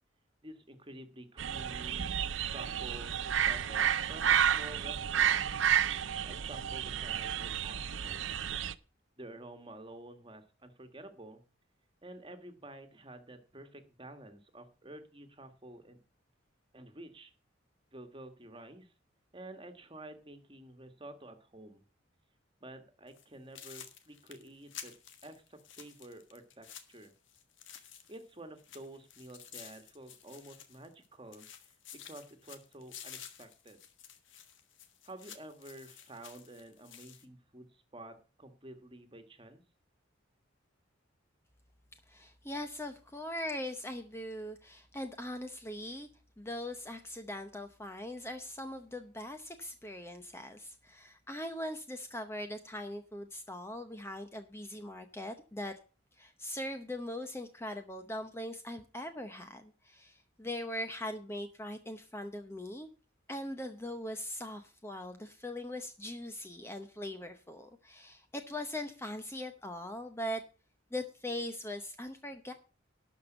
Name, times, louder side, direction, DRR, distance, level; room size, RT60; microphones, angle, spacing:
voice 1, 0.4-2.1 2.4-5.4 6.2-8.2 9.2-11.4 12.0-16.0 16.7-17.3 17.9-18.9 19.3-21.8 22.6-24.9 25.2-27.1 28.1-31.5 31.9-33.8 35.0-39.6, right 1 dB, 25° right, 7 dB, 1.6 m, -50 dB
sound 1, 1.4-8.7, right 9 dB, 75° right, 0.6 m, -31 dB
sound 2, 23.1-23.3 23.6-28.3 28.6-31.1 31.3-37.3, left 9 dB, 75° left, 1.5 m, -51 dB
voice 2, 42.1-46.1 46.4-55.7 56.2-62.9 63.3-70.4 70.9-72.5, left 1 dB, 15° left, 7 dB, 0.8 m, -41 dB
12.0 x 5.3 x 7.8 m, 0.36 s
head